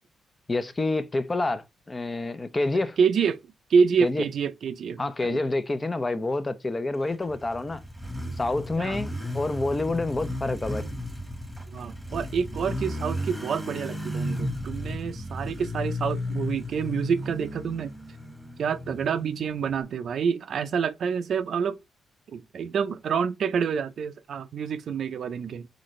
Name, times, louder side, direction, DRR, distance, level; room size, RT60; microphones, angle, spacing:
voice 1, 0.5-3.0 4.0-4.2 5.0-7.8 8.4-10.8, left 2 dB, 25° left, 0.7 m, -28 dB
voice 2, 3.0-3.4 3.7-5.4 8.8-9.0 11.7-17.9 18.6-21.8 22.3-25.7, right 6 dB, 65° right, 0.6 m, -27 dB
Motorcycle, 7.1-19.8, left 1 dB, ahead, 1.5 m, -34 dB
4.0 x 4.0 x 3.2 m
cardioid pair, 90°, 0 cm